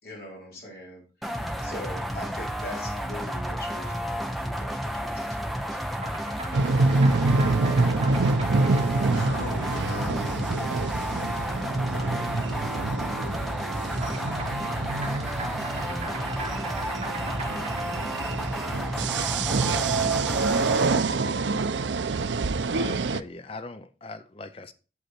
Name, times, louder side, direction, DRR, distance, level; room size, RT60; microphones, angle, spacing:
voice 1, 0.0-1.3 1.6-5.7, equal, 55° left, 4.1 m, -42 dB
sound 1, 1.2-21.0, equal, ahead, 0.8 m, -31 dB
sound 2, 5.9-10.6 13.9-19.3, right 2 dB, 35° right, 2.2 m, -41 dB
sound 3, 6.5-23.2, right 3 dB, 90° right, 0.5 m, -26 dB
voice 2, 8.7-10.7 11.9-13.4, left 2 dB, 80° left, 2.1 m, -38 dB
voice 3, 22.7-24.7, left 3 dB, 30° left, 0.5 m, -40 dB
8.2 x 7.7 x 4.4 m
head